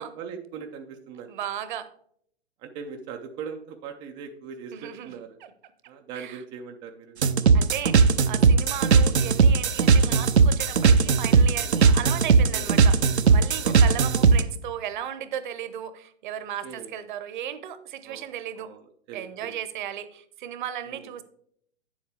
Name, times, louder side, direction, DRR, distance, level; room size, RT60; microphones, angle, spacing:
voice 1, 0.0-1.3 2.6-5.4 5.9-7.1 11.6-11.8 12.5-12.7 13.6-13.8 16.6-16.9 18.0-18.3 18.6-18.8 19.1-19.5 20.9-21.0, right 6 dB, 15° right, 4 dB, 0.4 m, -40 dB
voice 2, 1.3-1.9 4.7-5.5 6.1-6.4 7.5-13.0 13.3-18.7 19.1-21.2, right 10 dB, 45° right, 13 dB, 0.9 m, -35 dB
sound 1, 7.2-14.4, right 5 dB, 80° right, 0.6 m, -18 dB
8.9 x 7.2 x 3.4 m, 0.65 s
figure-of-eight pair, 115°, 33 cm